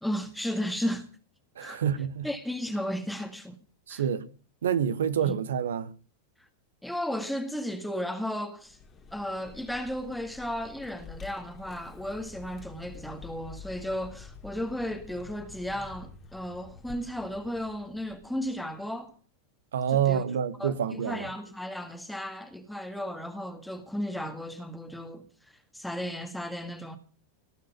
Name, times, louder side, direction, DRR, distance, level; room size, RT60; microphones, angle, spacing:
voice 1, 0.0-1.1 1.6-1.8 2.2-3.6 3.9-4.0 5.2-5.3 6.8-8.8 9.1-19.1 19.9-20.2 20.6-25.2 25.7-27.0, equal, ahead, 1.8 m, -34 dB
voice 2, 1.6-2.3 3.9-4.3 4.6-5.9 19.7-21.3, right 8 dB, 65° right, 1.4 m, -27 dB
Vehicle, 8.6-19.0, left 5 dB, 25° left, 2.3 m, -49 dB
18.5 x 6.5 x 9.4 m
figure-of-eight pair, 90°, 0 cm